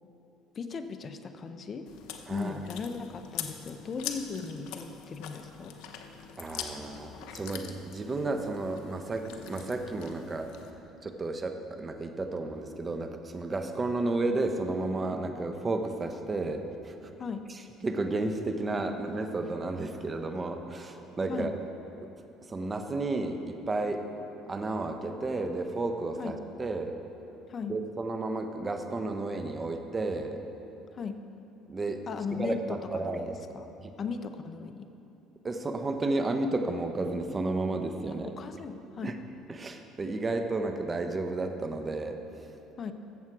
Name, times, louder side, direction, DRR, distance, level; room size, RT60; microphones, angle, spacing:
voice 1, 0.5-1.9 2.3-5.8 17.2-17.4 21.3-21.5 26.2-26.4 27.5-27.8 30.9-31.2 32.1-33.7 34.0-34.9 38.2-39.2 42.8-42.9, left 5 dB, 40° left, 9 dB, 0.7 m, -37 dB
Chewing mastication, 1.9-10.7, left 9 dB, 75° left, 0.8 m, -43 dB
voice 2, 6.4-10.5 11.0-16.9 17.8-21.6 22.0-22.1 22.5-24.0 24.5-27.0 27.7-30.4 31.7-32.0 32.3-33.4 35.4-38.3 39.0-39.1 39.5-42.2, right 2 dB, 25° right, 6 dB, 0.9 m, -32 dB
14.0 x 7.3 x 4.8 m, 2.9 s
supercardioid pair, 100°, 0 cm